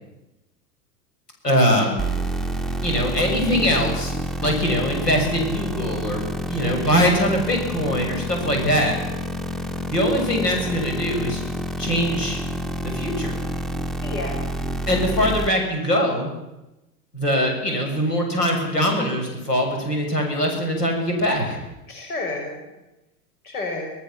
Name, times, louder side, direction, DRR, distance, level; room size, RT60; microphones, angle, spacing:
voice 1, 1.4-2.0 2.8-4.1 4.4-9.0 9.9-11.4 11.8-12.4 12.8-13.3 14.9-16.3 17.1-21.6, equal, 85° left, 2 dB, 7.1 m, -22 dB
sound 1, 2.0-15.5, equal, ahead, 0.9 m, -28 dB
voice 2, 6.6-7.0 14.0-14.5 21.9-22.7 23.4-23.9, left 2 dB, 70° left, 2 dB, 6.3 m, -31 dB
26.5 x 18.0 x 7.3 m, 0.97 s
figure-of-eight pair, 95°, 47 cm